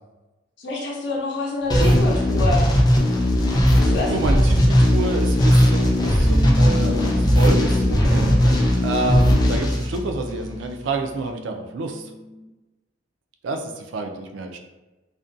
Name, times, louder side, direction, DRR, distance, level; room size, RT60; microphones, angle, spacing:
voice 1, 0.6-2.7 3.8-4.4, left 3 dB, 60° left, -2 dB, 0.6 m, -27 dB
sound 1, 1.7-10.6, equal, 20° left, 0.3 m, -18 dB
voice 2, 4.1-12.1 13.4-14.6, right 3 dB, 65° right, 4 dB, 0.3 m, -28 dB
sound 2, 6.2-12.5, left 2 dB, 90° right, 0.9 m, -35 dB
2.4 x 2.2 x 2.5 m, 1.1 s
head